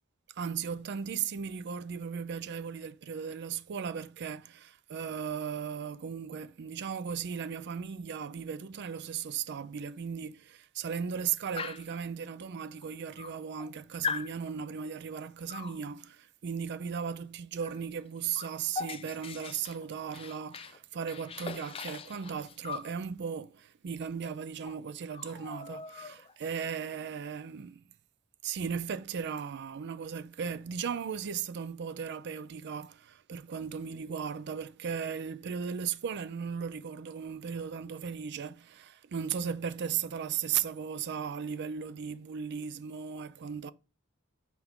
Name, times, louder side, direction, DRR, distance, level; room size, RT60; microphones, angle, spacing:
voice 1, 0.4-27.8 28.4-43.7, right 7 dB, 55° right, 0.4 m, -36 dB
Dog, 11.6-12.0 12.8-12.9 13.2-13.7 14.0-14.3 15.5-15.8 17.6-17.8 18.1-20.8 21.1-22.9 24.2-24.3 24.6-24.8 25.1-26.4, left 5 dB, 25° left, 0.4 m, -40 dB
5.8 x 4.5 x 3.6 m
head